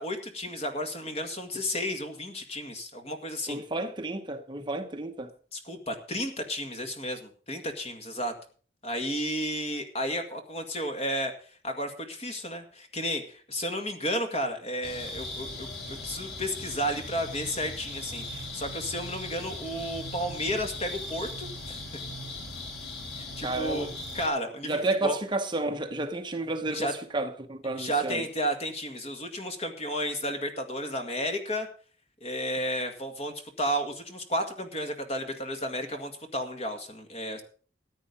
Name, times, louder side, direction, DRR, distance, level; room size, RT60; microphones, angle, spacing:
voice 1, 0.0-3.6 5.5-8.3 8.8-11.3 11.6-21.8 23.2-23.9 24.1-25.2 26.7-26.9 27.7-31.7 32.2-37.4, equal, 35° left, 2.0 m, -32 dB
voice 2, 3.5-5.3 23.4-23.9 24.6-28.3, right 2 dB, 25° right, 0.9 m, -31 dB
sound 1, 14.8-24.3, left 1 dB, 85° left, 3.7 m, -39 dB
14.5 x 9.0 x 5.4 m
head